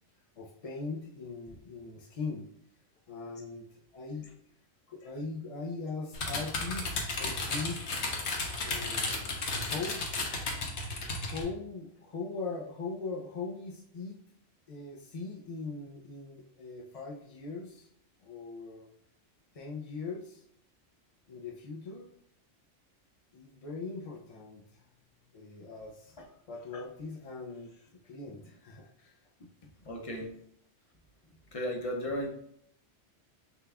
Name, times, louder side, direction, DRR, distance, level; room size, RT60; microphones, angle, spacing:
voice 1, 0.4-2.4 3.1-3.6 3.9-4.4 4.9-8.0 8.6-9.3 9.7-10.1 11.2-14.2 14.7-17.9 18.2-18.9 19.5-20.4 21.3-22.1 23.3-24.8 25.3-26.2 26.5-29.1 29.4-29.7, left 4 dB, 55° left, -2 dB, 0.4 m, -40 dB
sound 1, 6.1-11.4, left 3 dB, 70° left, 1.1 m, -34 dB
voice 2, 29.8-30.3 31.5-32.3, equal, 35° left, 1 dB, 0.7 m, -35 dB
5.7 x 2.3 x 3.4 m, 0.69 s
omnidirectional pair, 1.2 m